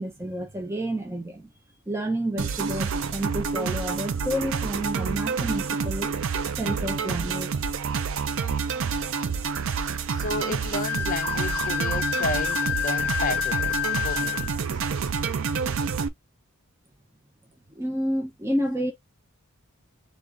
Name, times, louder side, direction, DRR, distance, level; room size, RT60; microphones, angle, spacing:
voice 1, 0.0-1.5 1.9-6.1 6.6-7.8 17.7-18.9, right 1 dB, 10° right, 0.5 m, -30 dB
sound 1, 2.4-16.1, right 5 dB, 60° right, 0.4 m, -28 dB
voice 2, 10.1-14.6, left 3 dB, 35° left, 0.6 m, -33 dB
Wind instrument woodwind instrument, 10.8-14.6, left 10 dB, 90° left, 0.5 m, -28 dB
3.6 x 2.4 x 3.7 m
head